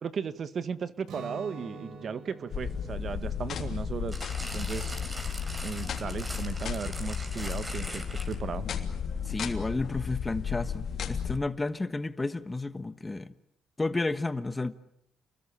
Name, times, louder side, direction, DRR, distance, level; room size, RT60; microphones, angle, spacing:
voice 1, 0.0-4.3 4.5-4.9 5.6-8.7, right 6 dB, 50° right, 1.6 m, -36 dB
Guitar, 1.0-6.9, right 3 dB, 80° right, 6.1 m, -48 dB
sound 1, 2.5-11.4, left 7 dB, 60° left, 3.2 m, -34 dB
sound 2, 4.1-8.6 9.3-9.4, right 1 dB, 20° right, 5.6 m, -41 dB
voice 2, 9.2-13.3 13.8-14.8, left 3 dB, 20° left, 1.3 m, -32 dB
29.5 x 21.0 x 8.8 m
cardioid pair, 90°, 0 cm